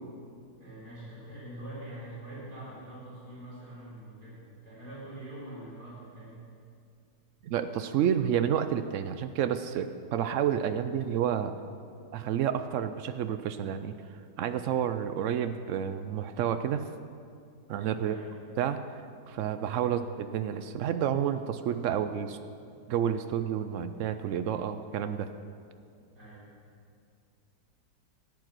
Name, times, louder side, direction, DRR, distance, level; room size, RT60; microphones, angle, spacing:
voice 1, 0.5-6.4 18.0-18.3 19.8-20.1 26.1-26.4, right 1 dB, 65° right, -8 dB, 4.7 m, -44 dB
voice 2, 7.4-11.5 12.1-13.9 14.4-16.8 17.7-18.2 18.6-18.8 19.3-22.4 22.9-25.3, right 9 dB, 85° right, 10 dB, 0.6 m, -30 dB
14.0 x 9.4 x 6.0 m, 2.3 s
omnidirectional pair, 1.9 m